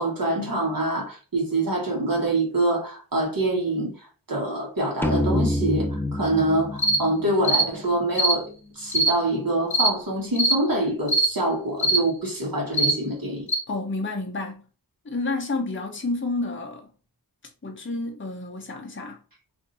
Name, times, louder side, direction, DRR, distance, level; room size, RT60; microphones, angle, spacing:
voice 1, 0.0-3.9 4.3-8.5 8.7-13.5, right 1 dB, 55° right, 1.3 m, -25 dB
sound 1, 5.0-8.5, left 1 dB, 5° left, 0.3 m, -27 dB
sound 2, 6.8-7.0 7.4-7.7 8.1-8.4 8.9-9.1 9.7-9.9 10.4-10.6 11.1-11.3 11.8-12.0 12.7-13.0 13.5-13.6, right 1 dB, 65° left, 0.9 m, -20 dB
voice 2, 13.7-14.7 15.0-16.9 17.6-19.2, left 2 dB, 30° left, 0.8 m, -30 dB
2.7 x 2.6 x 4.0 m
wide cardioid pair, 60°, 41 cm